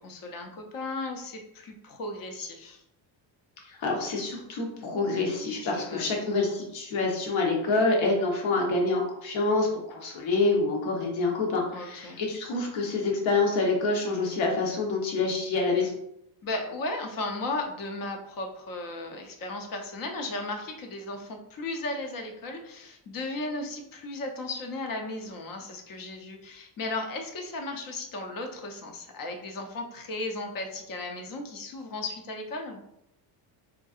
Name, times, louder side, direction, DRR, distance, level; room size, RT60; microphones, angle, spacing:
voice 1, 0.0-2.8 5.6-6.1 11.7-12.2 16.4-32.8, left 2 dB, 45° left, 4 dB, 0.7 m, -35 dB
voice 2, 3.7-15.9, left 3 dB, 65° left, 0 dB, 1.1 m, -27 dB
3.8 x 2.7 x 2.4 m, 0.78 s
cardioid pair, 130°, 49 cm